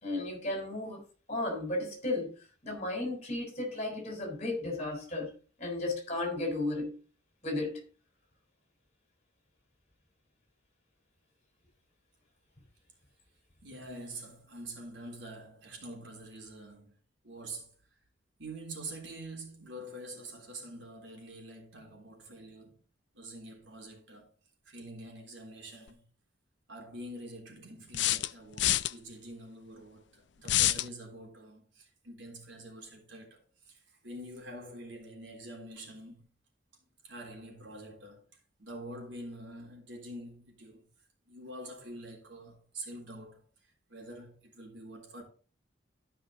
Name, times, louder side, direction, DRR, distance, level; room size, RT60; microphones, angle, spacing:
voice 1, 0.0-2.3 2.6-7.0 7.4-7.8, left 2 dB, 35° left, 4.1 m, -34 dB
voice 2, 13.6-16.9 17.2-17.7 18.4-22.8 23.1-24.3 24.7-26.0 26.7-30.0 30.3-36.3 37.0-38.2 38.6-40.9 41.3-43.4 43.9-45.2, right 1 dB, 80° right, 3.6 m, -46 dB
sound 1, 25.9-26.0 27.9-28.9 30.4-30.9, left 14 dB, 65° left, 0.4 m, -27 dB
12.5 x 5.6 x 3.9 m
head